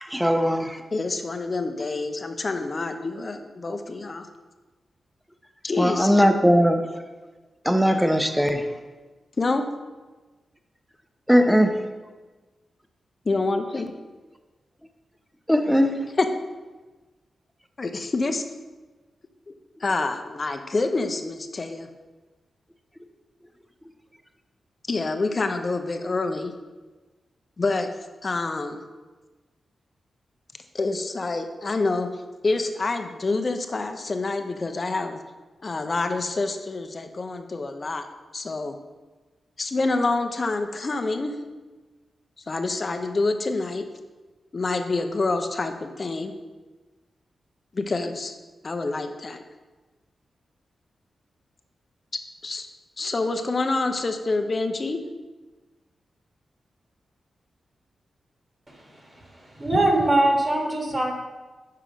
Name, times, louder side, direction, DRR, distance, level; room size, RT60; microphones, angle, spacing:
voice 1, 0.0-0.8 5.8-6.8 7.6-8.6 11.3-11.7 15.5-15.9, equal, ahead, 6 dB, 0.7 m, -19 dB
voice 2, 0.9-4.3 5.6-6.2 9.4-9.7 13.3-13.9 16.2-16.3 17.8-18.4 19.8-21.9 24.9-26.5 27.6-27.9 28.2-28.8 30.7-32.1 32.4-35.2 35.6-38.0 38.3-38.7 39.6-41.3 42.5-43.8 44.5-46.3 47.7-48.3 48.6-49.4 52.4-52.7 53.0-55.0, left 3 dB, 45° left, 7 dB, 0.7 m, -27 dB
voice 3, 59.6-61.1, right 1 dB, 35° right, 0 dB, 1.5 m, -21 dB
5.7 x 4.8 x 5.1 m, 1.3 s
cardioid pair, 70°, 0 cm